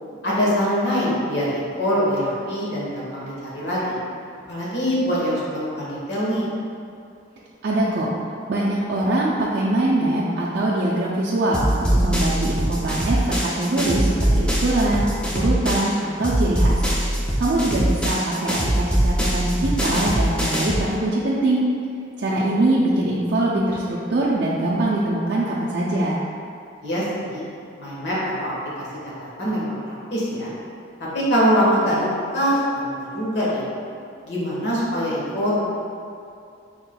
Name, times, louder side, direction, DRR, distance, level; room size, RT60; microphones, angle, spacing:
voice 1, 0.2-4.0 4.5-6.4 17.3-17.4 26.8-27.4 27.8-28.9 29.2-30.5 31.1-33.6 34.2-35.7, equal, 65° left, -7 dB, 1.2 m, -23 dB
voice 2, 7.6-8.1 8.5-15.1 15.3-16.9 17.4-21.6 22.2-26.2, right 1 dB, 60° right, -7 dB, 0.4 m, -22 dB
sound 1, 11.5-16.0 16.2-20.9, right 1 dB, 5° left, 0.4 m, -22 dB
5.6 x 3.5 x 2.2 m, 2.5 s
head